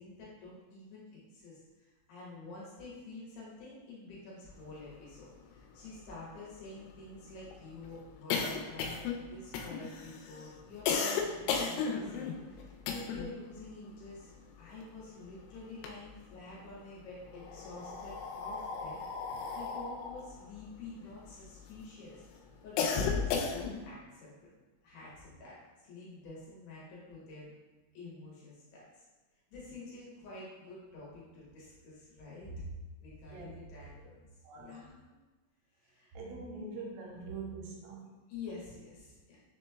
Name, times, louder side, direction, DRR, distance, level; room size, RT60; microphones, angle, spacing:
voice 1, 0.0-22.2 22.6-24.5 24.8-27.5 27.9-29.0 29.5-32.6 33.0-34.2 34.6-35.2 35.8-36.2 36.5-36.6 38.3-39.4, left 2 dB, 70° left, -7 dB, 2.8 m, -48 dB
sound 1, 5.2-5.3 5.5-5.6 5.9-13.4 13.7-15.2 15.6-16.5 17.3-21.8 22.2-23.9, left 5 dB, 85° left, 3.0 m, -35 dB
voice 2, 34.4-34.8 36.1-38.1, right 3 dB, 90° right, -1 dB, 3.1 m, -43 dB
6.8 x 3.1 x 2.2 m, 1.2 s
omnidirectional pair, 5.4 m